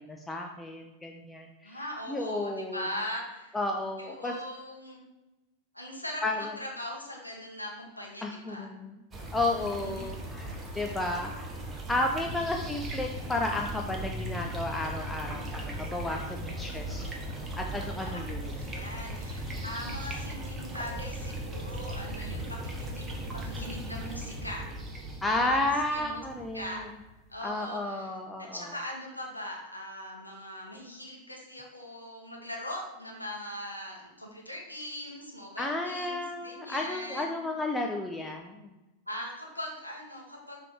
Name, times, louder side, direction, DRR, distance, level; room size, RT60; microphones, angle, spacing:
voice 1, 0.1-1.8 2.1-2.9 3.5-4.3 6.2-6.5 8.2-9.0 9.3-11.5 11.9-17.0 17.6-18.5 25.2-26.9 27.4-28.7 35.6-38.7, left 2 dB, 10° left, 2 dB, 0.5 m, -32 dB
voice 2, 1.6-3.6 4.0-5.0 5.7-8.6 9.8-10.1 12.3-12.7 18.0-24.7 25.4-26.2 26.5-26.9 27.3-37.4 39.1-40.6, left 1 dB, 90° left, -1 dB, 1.3 m, -40 dB
sound 1, 9.1-27.3, right 1 dB, 20° right, 1.1 m, -38 dB
6.7 x 3.5 x 4.9 m, 1.0 s
figure-of-eight pair, 90°, 0 cm